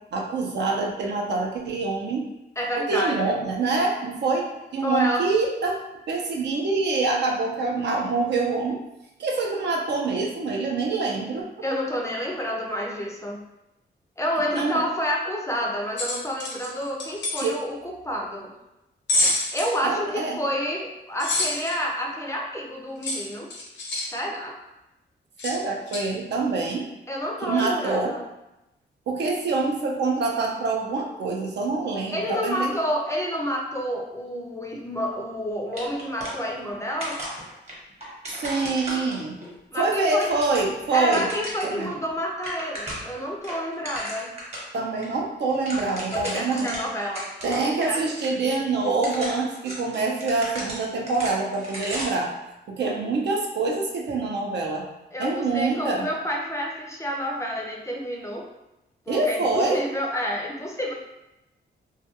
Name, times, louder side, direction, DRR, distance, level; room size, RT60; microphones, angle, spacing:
voice 1, 0.1-2.3 2.8-5.8 6.1-8.8 9.2-11.4 14.5-14.8 17.4-17.5 19.8-20.4 25.4-26.8 27.4-28.1 29.1-32.7 38.3-39.4 39.7-41.3 41.6-41.9 44.7-46.8 47.4-52.3 52.7-54.9 55.2-56.1 59.1-59.8, right 3 dB, 65° right, 0 dB, 0.5 m, -25 dB
voice 2, 2.6-3.3 4.8-5.3 11.6-13.4 14.2-18.5 19.5-23.5 24.1-24.5 27.1-28.2 32.1-37.2 39.7-40.3 40.9-44.3 46.1-47.3 47.6-48.2 55.1-58.5 59.1-60.9, equal, 15° left, -1 dB, 0.4 m, -29 dB
wrenches rustle clank, 16.0-17.5 19.1-19.8 21.2-21.7 23.0-24.1 25.4-25.6 25.9-26.0, left 2 dB, 70° left, 0.7 m, -26 dB
sound 1, 35.7-36.7 37.0-39.5 40.0-41.8 42.1-42.2 42.4-43.1 43.4-44.7 45.0-45.1 45.4-47.9 48.2-48.3 48.8-52.3, right 1 dB, 35° right, 1.0 m, -35 dB
2.3 x 2.2 x 2.8 m, 0.93 s
cardioid pair, 100°, 19 cm